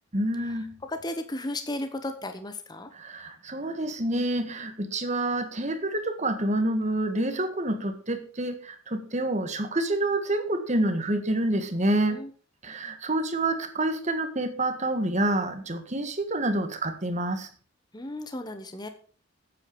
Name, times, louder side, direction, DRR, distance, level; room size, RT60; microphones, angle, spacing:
voice 1, 0.1-0.8 2.9-12.2 12.6-17.5, right 1 dB, 35° right, 8 dB, 1.6 m, -28 dB
voice 2, 0.8-2.9 12.1-12.3 17.9-18.9, left 1 dB, 20° left, 8 dB, 1.0 m, -34 dB
8.7 x 8.3 x 6.8 m, 0.42 s
head